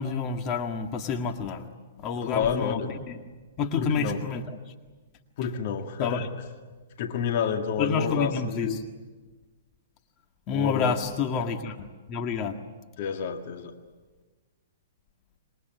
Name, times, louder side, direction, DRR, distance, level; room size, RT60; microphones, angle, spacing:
voice 1, 0.0-1.7 2.0-3.2 3.6-4.4 6.0-6.3 7.8-8.8 10.5-11.8 12.1-12.6, left 5 dB, 30° left, 6 dB, 1.8 m, -29 dB
voice 2, 2.2-2.9 3.8-4.2 5.4-6.3 7.0-8.8 10.5-11.0 11.3-11.5 13.0-13.7, left 7 dB, 50° left, 5 dB, 2.1 m, -29 dB
27.5 x 22.0 x 9.4 m, 1.3 s
hypercardioid pair, 140°, 0 cm